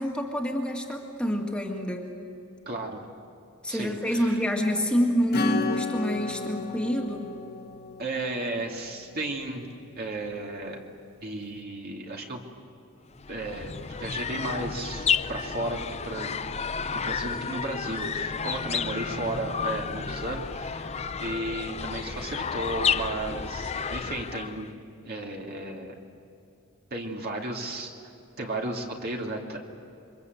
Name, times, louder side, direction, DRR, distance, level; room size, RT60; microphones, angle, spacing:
voice 1, 0.0-2.1 3.6-7.2, equal, 5° left, 0 dB, 2.2 m, -27 dB
voice 2, 2.7-3.0 3.7-4.4 8.0-9.7 10.0-10.8 11.2-12.4 13.3-16.4 16.9-24.8 25.0-25.9 26.9-27.9 28.4-29.6, right 2 dB, 45° right, 0 dB, 2.6 m, -34 dB
Acoustic guitar / Strum, 5.3-9.6, left 3 dB, 45° left, 1.9 m, -33 dB
sound 1, 13.1-24.7, left 6 dB, 30° left, 0.6 m, -31 dB
28.0 x 24.5 x 8.0 m, 2.7 s
head